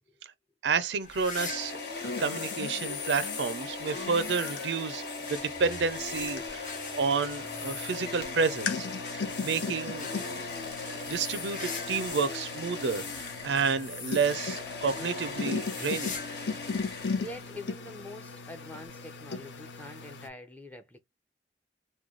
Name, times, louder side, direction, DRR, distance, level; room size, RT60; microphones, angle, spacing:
voice 1, 0.6-8.9 9.1-10.1 10.9-16.2, right 5 dB, 75° right, 0.4 m, -30 dB
sound 1, 1.0-2.7 3.0-12.4 12.7-14.5 14.9-15.1 15.5-16.4 16.6-16.7 17.5-17.6 18.8-18.9, left 5 dB, 45° left, 0.8 m, -43 dB
sound 2, 1.4-17.6, left 3 dB, 60° left, 1.4 m, -39 dB
sound 3, 2.0-20.3, left 4 dB, 80° left, 0.6 m, -39 dB
voice 2, 17.2-21.0, left 1 dB, 10° left, 0.5 m, -45 dB
3.1 x 2.2 x 3.7 m
head